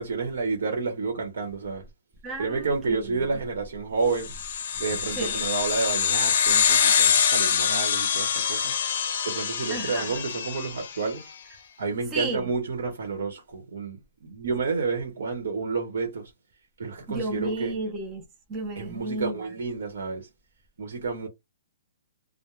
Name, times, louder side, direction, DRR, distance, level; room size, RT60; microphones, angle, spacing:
voice 1, 0.0-1.8 2.4-4.3 4.8-8.7 9.2-11.3 11.8-14.0 14.2-16.3 16.8-17.7 18.8-20.3 20.8-21.3, right 4 dB, 70° right, 1.0 m, -30 dB
voice 2, 2.2-3.3 5.2-5.4 9.7-10.2 12.1-12.5 17.1-18.2 18.5-19.5, right 2 dB, 15° right, 0.5 m, -33 dB
sound 1, 4.2-11.0, left 7 dB, 50° left, 0.5 m, -24 dB
2.3 x 2.1 x 3.0 m
hypercardioid pair, 175°, 0 cm